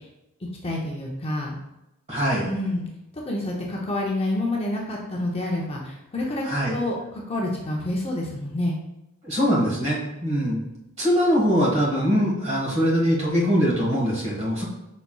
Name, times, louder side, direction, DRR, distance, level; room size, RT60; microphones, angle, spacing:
voice 1, 0.6-1.6 2.4-2.9 3.3-6.4 6.7-8.8, left 1 dB, 25° left, -2 dB, 0.6 m, -28 dB
voice 2, 2.1-2.5 6.4-6.8 9.2-10.6 11.0-14.6, equal, 30° right, -5 dB, 1.5 m, -22 dB
5.7 x 4.1 x 2.3 m, 0.91 s
head